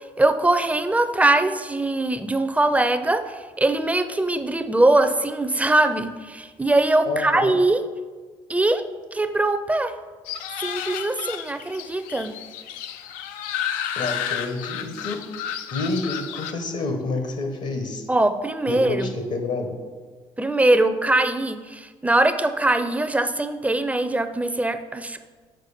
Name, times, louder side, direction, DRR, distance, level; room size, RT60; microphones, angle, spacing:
voice 1, 0.2-7.8 8.5-8.8 9.1-10.0 10.6-12.4 18.1-19.1 20.4-25.2, right 2 dB, 10° right, 10 dB, 0.5 m, -21 dB
voice 2, 7.1-7.6 14.0-15.2 15.7-18.1 18.7-19.7, left 3 dB, 65° left, 5 dB, 1.0 m, -28 dB
sound 1, 10.3-16.5, left 9 dB, 80° left, 0.4 m, -32 dB
6.6 x 4.6 x 4.2 m, 1.4 s
hypercardioid pair, 55°, 13 cm